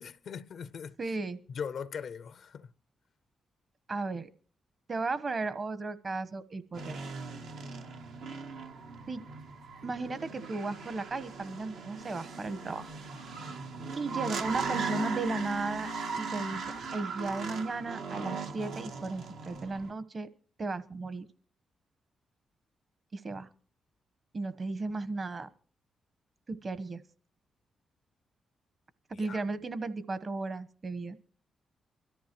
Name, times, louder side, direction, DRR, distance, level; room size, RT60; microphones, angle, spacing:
voice 1, 0.0-1.1 1.5-2.7 29.1-29.5, left 6 dB, 70° left, 0.6 m, -40 dB
voice 2, 1.0-1.4 3.9-4.3 4.9-7.0 9.1-9.2 9.8-12.9 14.0-15.9 16.2-16.6 16.9-20.3 20.6-21.2 23.1-23.5 24.3-25.5 26.5-27.0 29.1-31.3, right 3 dB, 45° right, 1.1 m, -35 dB
sound 1, 6.7-19.9, right 4 dB, 85° right, 1.2 m, -38 dB
23.5 x 13.5 x 3.0 m
supercardioid pair, 50°, 0 cm